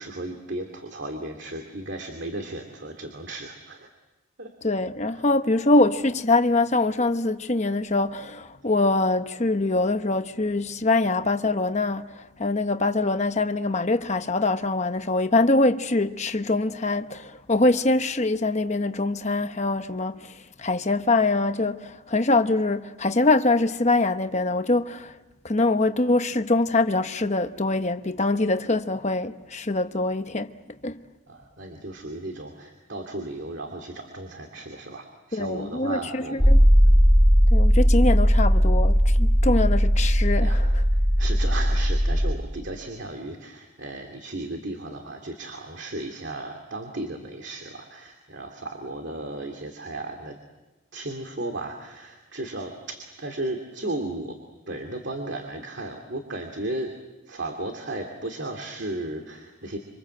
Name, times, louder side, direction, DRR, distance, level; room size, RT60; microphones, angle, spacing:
voice 1, 0.0-3.9 4.4-4.5 5.1-5.3 31.3-36.5 36.8-37.0 40.4-40.6 40.9-50.4 50.9-54.4 54.7-56.9 57.3-59.8, right 2 dB, 55° right, 2.6 m, -35 dB
voice 2, 4.6-20.3 20.6-25.2 25.4-30.5 30.8-31.0 35.3-36.6 37.5-40.6, left 2 dB, 30° left, 1.0 m, -23 dB
sound 1, 36.4-42.3, equal, ahead, 3.3 m, -18 dB
27.0 x 26.0 x 7.8 m
head